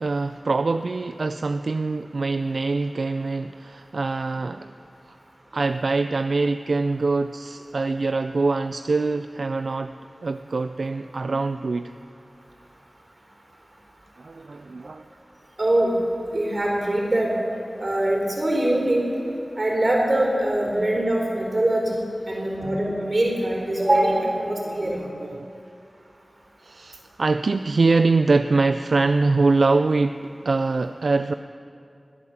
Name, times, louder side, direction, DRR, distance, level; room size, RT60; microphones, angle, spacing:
voice 1, 0.0-4.7 5.5-9.9 10.2-11.9 14.2-15.0 21.0-21.1 22.3-22.4 24.7-25.5 26.6-31.3, right 3 dB, 80° right, 9 dB, 0.3 m, -24 dB
voice 2, 15.6-15.9 16.3-17.3 17.8-19.0 19.6-22.0 22.3-25.0, right 1 dB, 50° right, -1 dB, 4.0 m, -22 dB
21.5 x 8.5 x 7.1 m, 2.5 s
wide cardioid pair, 55°, 0 cm